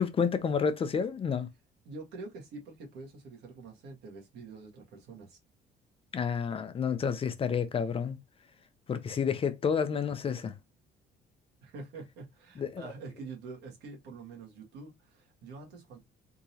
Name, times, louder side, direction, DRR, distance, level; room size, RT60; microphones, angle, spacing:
voice 1, 0.0-1.5 6.1-8.2 8.9-10.5 12.6-12.8, left 6 dB, 35° left, 0.6 m, -30 dB
voice 2, 1.8-5.4 11.6-16.0, right 3 dB, 80° right, 1.6 m, -46 dB
3.7 x 2.8 x 2.8 m
cardioid pair, 110°, 17 cm